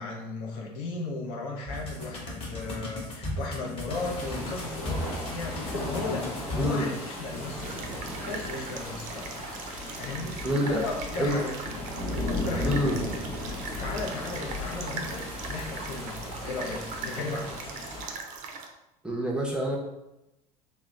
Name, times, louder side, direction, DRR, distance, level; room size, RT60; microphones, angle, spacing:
voice 1, 0.0-9.3 9.9-11.9 12.3-13.0 13.4-18.0, left 3 dB, 55° left, 0 dB, 0.7 m, -36 dB
sound 1, 1.7-6.7, left 1 dB, 30° left, 1.1 m, -36 dB
sound 2, 3.9-18.1, left 1 dB, 75° left, 1.1 m, -36 dB
sound 3, 7.6-18.7, right 5 dB, 40° right, 0.5 m, -40 dB
voice 2, 10.4-10.8 11.2-11.4 12.6-13.0 19.0-19.8, equal, 5° right, -3 dB, 0.7 m, -27 dB
3.0 x 2.1 x 3.6 m, 0.92 s
figure-of-eight pair, 65°, 20 cm